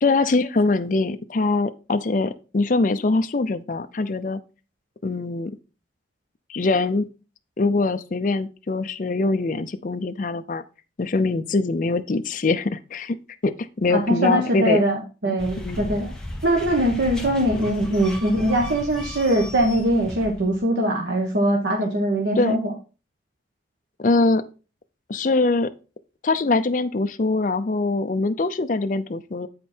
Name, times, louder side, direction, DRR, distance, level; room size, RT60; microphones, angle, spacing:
voice 1, 0.0-4.4 5.0-5.5 6.5-7.1 7.6-10.6 11.0-13.2 13.4-14.8 15.2-15.3 15.6-15.9 22.4-22.6 24.0-24.4 25.1-25.7 26.2-29.5, left 3 dB, 45° left, 8 dB, 0.5 m, -23 dB
voice 2, 13.9-16.1 16.4-22.7, right 1 dB, 75° right, 0 dB, 1.3 m, -22 dB
sound 1, 15.4-20.7, equal, 5° left, 1.1 m, -35 dB
8.2 x 5.1 x 4.3 m, 0.34 s
head